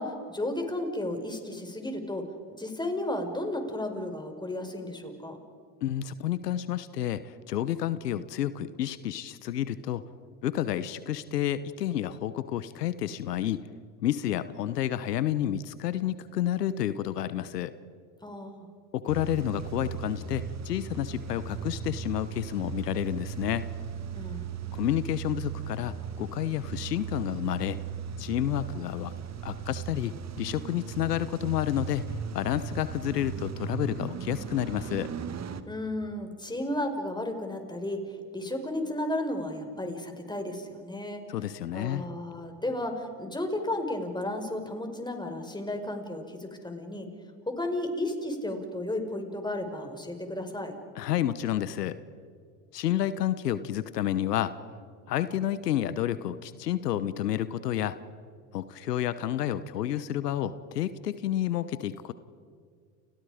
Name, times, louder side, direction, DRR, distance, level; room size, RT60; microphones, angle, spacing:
voice 1, 0.0-2.3 2.6-5.4 18.2-18.7 24.1-24.5 35.7-41.2 41.7-47.1 47.5-50.8, left 1 dB, 10° left, 5 dB, 5.3 m, -33 dB
voice 2, 5.8-10.0 10.4-13.6 14.0-17.7 18.9-23.6 24.7-27.8 28.2-29.1 29.4-32.0 32.3-35.1 41.3-42.1 51.0-52.0 52.7-54.5 55.1-58.0 58.5-62.1, left 11 dB, 85° left, 14 dB, 1.1 m, -30 dB
Car / Engine starting / Idling, 19.1-35.6, right 7 dB, 35° right, 1.9 m, -37 dB
30.0 x 30.0 x 5.1 m, 2.1 s
hypercardioid pair, 75°, 47 cm